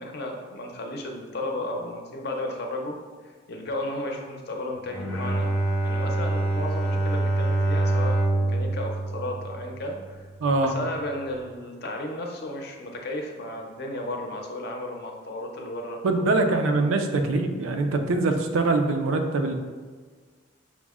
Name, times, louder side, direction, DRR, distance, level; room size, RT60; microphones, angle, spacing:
voice 1, 0.0-3.0 3.2-10.3 10.6-16.0 16.5-16.8, left 1 dB, 50° left, 2 dB, 0.6 m, -34 dB
Bowed string instrument, 4.8-10.1, right 2 dB, 5° left, 0.6 m, -25 dB
voice 2, 10.4-10.8 16.0-19.5, right 2 dB, 85° right, 5 dB, 0.4 m, -23 dB
6.0 x 2.1 x 3.5 m, 1.5 s
head